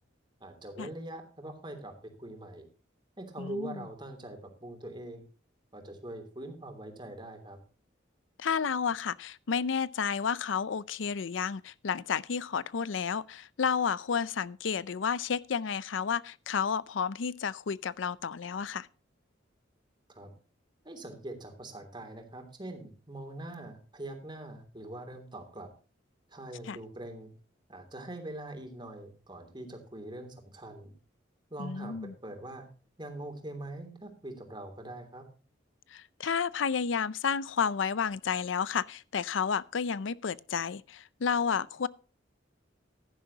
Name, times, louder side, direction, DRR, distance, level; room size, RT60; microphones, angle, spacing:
voice 1, 0.4-2.6 3.2-5.2 5.7-7.6 20.1-20.3 20.8-25.7 26.3-27.3 27.7-30.9 31.5-32.7 33.0-35.2, right 1 dB, 25° right, 3.0 m, -43 dB
voice 2, 3.4-3.8 8.4-18.9 26.7-26.8 31.6-32.1 35.9-41.9, left 6 dB, 80° left, 0.5 m, -31 dB
16.0 x 11.0 x 2.8 m
head